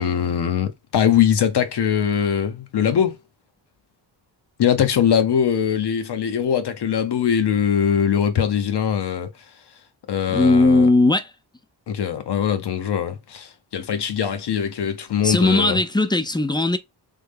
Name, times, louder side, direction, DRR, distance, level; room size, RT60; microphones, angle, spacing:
voice 1, 0.0-3.2 4.6-9.3 10.1-10.9 11.9-15.8, left 8 dB, 70° left, 0.9 m, -21 dB
voice 2, 10.3-11.3 15.2-16.8, left 2 dB, 10° left, 0.4 m, -18 dB
3.4 x 2.1 x 3.4 m
cardioid pair, 80°, 42 cm